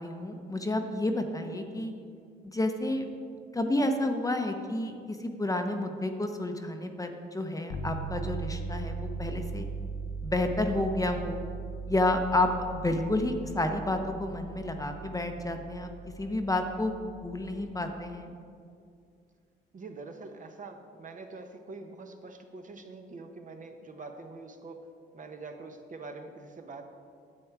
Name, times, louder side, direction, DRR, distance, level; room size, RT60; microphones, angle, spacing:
voice 1, 0.0-1.9 2.4-3.1 3.5-9.7 10.2-11.4 11.9-15.9 16.2-18.3, left 2 dB, 15° left, 5 dB, 0.8 m, -30 dB
sound 1, 7.7-17.8, right 4 dB, 75° left, 1.1 m, -39 dB
voice 2, 19.7-24.8 25.1-26.8, right 3 dB, 40° right, 5 dB, 0.9 m, -44 dB
10.0 x 7.8 x 4.7 m, 2.3 s
cardioid pair, 90°, 20 cm